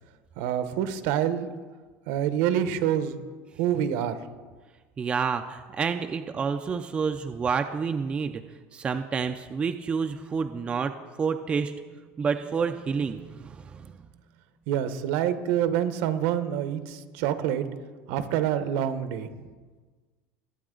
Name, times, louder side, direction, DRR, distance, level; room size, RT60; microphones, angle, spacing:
voice 1, 0.4-1.5 2.1-3.2 3.6-4.2 14.7-17.6 18.1-19.3, right 10 dB, 70° right, 10 dB, 1.0 m, -26 dB
voice 2, 5.0-8.4 8.7-11.8 12.2-14.0, right 5 dB, 20° right, 7 dB, 0.4 m, -29 dB
21.5 x 8.6 x 3.8 m, 1.4 s
cardioid pair, 165°, 6 cm